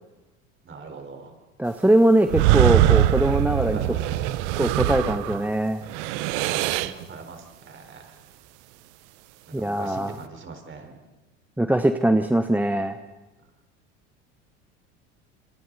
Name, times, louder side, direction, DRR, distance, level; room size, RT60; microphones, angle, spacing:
voice 1, 0.6-1.3 3.6-4.3 6.3-8.2 9.5-11.0, right 4 dB, 30° right, 5 dB, 4.5 m, -41 dB
voice 2, 1.6-3.8 4.6-5.8 9.5-10.2 11.6-13.0, right 1 dB, 5° right, 9 dB, 0.9 m, -21 dB
sound 1, 2.3-5.5 5.8-7.0, right 14 dB, 65° right, 1.0 m, -22 dB
26.5 x 26.5 x 4.2 m, 1.1 s
hypercardioid pair, 85°, 37 cm